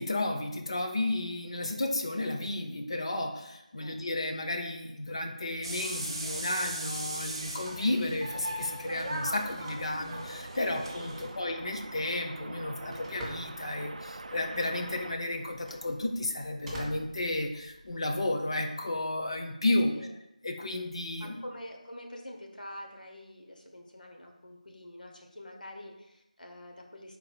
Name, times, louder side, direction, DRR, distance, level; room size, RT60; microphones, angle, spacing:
voice 1, 0.0-19.9 20.4-21.4, left 2 dB, 40° left, 4 dB, 0.6 m, -32 dB
sound 1, 5.6-11.3, right 1 dB, 35° right, 0.7 m, -38 dB
sound 2, 8.1-16.3, right 2 dB, 60° right, 0.3 m, -46 dB
Telephone, 10.9-17.9, equal, 5° right, 0.5 m, -48 dB
voice 2, 11.0-11.4 19.8-20.1 21.2-27.2, left 1 dB, 85° left, 2 dB, 1.0 m, -46 dB
3.9 x 2.5 x 4.7 m, 0.88 s
figure-of-eight pair, 170°, 4 cm